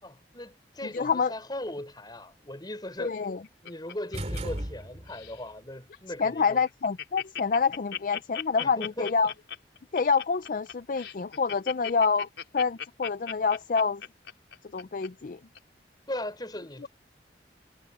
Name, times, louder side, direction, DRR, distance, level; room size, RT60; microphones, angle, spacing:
voice 1, 0.0-3.2 3.6-6.6 8.6-9.1 16.1-16.9, left 1 dB, 25° left, 4.7 m, -38 dB
voice 2, 0.8-1.3 3.0-3.4 6.2-9.3 9.9-12.3 12.5-14.0 14.7-15.4 16.8-16.9, left 5 dB, 45° left, 0.4 m, -27 dB
Laughter, 3.0-4.8 5.1-5.4 5.9-6.0 6.3-6.4 6.7-15.1 15.6-15.7, left 9 dB, 75° left, 4.8 m, -38 dB
sound 1, 4.1-5.4, right 1 dB, 35° right, 3.1 m, -35 dB
head